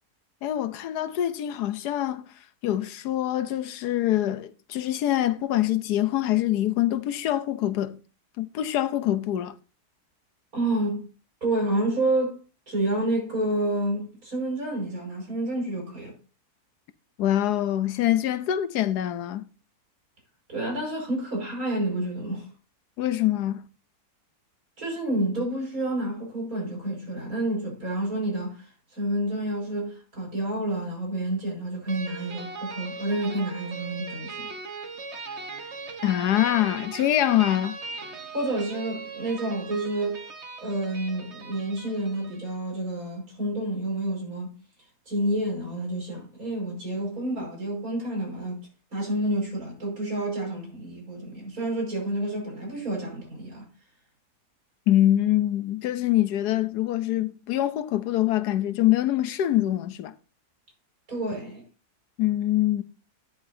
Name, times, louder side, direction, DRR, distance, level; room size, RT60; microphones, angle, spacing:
voice 1, 0.4-2.3 2.6-8.0 8.4-9.5 17.2-19.4 23.0-23.6 36.0-37.8 54.9-60.1 62.2-62.8, left 13 dB, 85° left, 1.3 m, -24 dB
voice 2, 10.5-11.0 11.4-12.4 12.7-16.1 20.5-22.5 24.8-34.5 38.3-40.2 40.6-44.6 45.1-53.7 61.1-61.6, right 1 dB, 60° right, 5.8 m, -29 dB
sound 1, 31.9-42.6, right 4 dB, 45° right, 1.5 m, -39 dB
11.5 x 10.5 x 2.7 m
omnidirectional pair, 1.7 m